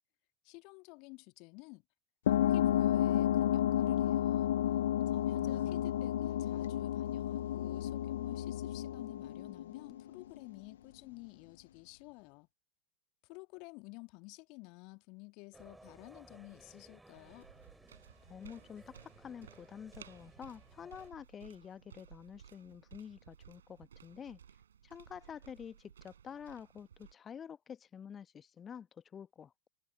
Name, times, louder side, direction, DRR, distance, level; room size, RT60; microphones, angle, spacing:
voice 1, 0.4-1.8 2.3-4.5 5.1-12.5 13.2-17.5, left 29 dB, 45° left, 1.9 m, -52 dB
sound 1, 2.3-10.4, left 11 dB, 60° left, 0.4 m, -31 dB
voice 2, 5.3-5.8 18.3-24.4 24.8-29.7, left 8 dB, 20° left, 1.3 m, -49 dB
sound 2, 15.5-21.1, right 2 dB, 5° right, 3.2 m, -59 dB
sound 3, 17.1-27.1, right 8 dB, 65° right, 4.2 m, -58 dB
figure-of-eight pair, 90°, 0 cm